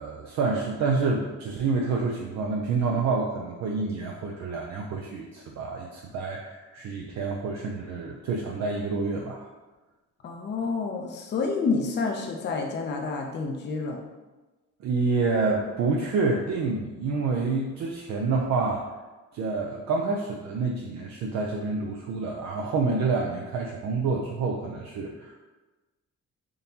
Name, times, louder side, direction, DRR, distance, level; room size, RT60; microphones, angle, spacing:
voice 1, 0.0-9.5 14.8-18.8 19.3-25.4, right 4 dB, 65° right, -1 dB, 0.5 m, -28 dB
voice 2, 10.2-14.0, left 4 dB, 35° left, 1 dB, 0.5 m, -29 dB
3.6 x 2.7 x 2.8 m, 1.2 s
cardioid pair, 90°, 30 cm